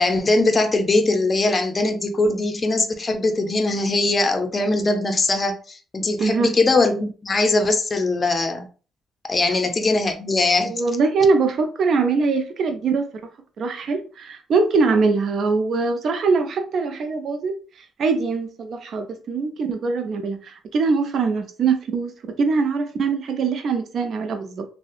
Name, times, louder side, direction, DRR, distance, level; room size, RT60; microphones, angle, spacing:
voice 1, 0.0-8.7 9.3-10.7, left 2 dB, 30° left, 0.5 m, -21 dB
voice 2, 6.2-6.5 10.6-13.1 13.6-17.6 18.0-24.7, right 4 dB, 60° right, 0.4 m, -22 dB
2.7 x 2.0 x 2.3 m
cardioid pair, 90°, 0 cm